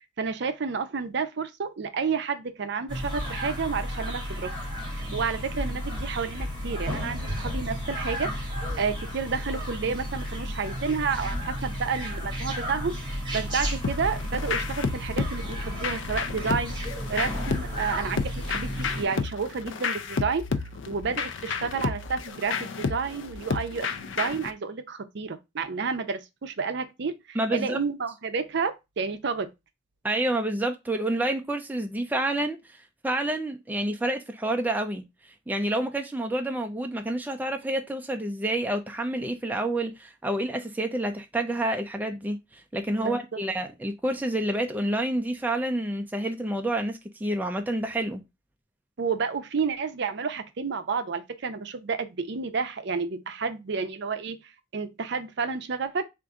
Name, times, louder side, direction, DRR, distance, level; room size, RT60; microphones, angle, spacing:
voice 1, 0.2-4.5 4.9-8.4 8.7-16.7 17.1-20.4 20.9-29.5 43.0-43.4 49.0-54.4 54.7-56.0, right 5 dB, 60° right, 0.5 m, -30 dB
sound 1, 2.9-19.0, equal, 25° right, 2.3 m, -33 dB
sound 2, 13.8-24.5, left 5 dB, 65° left, 0.4 m, -32 dB
voice 2, 27.4-27.8 30.0-32.8 33.0-35.0 35.5-48.2, right 1 dB, 10° right, 0.4 m, -28 dB
3.7 x 2.5 x 4.7 m
head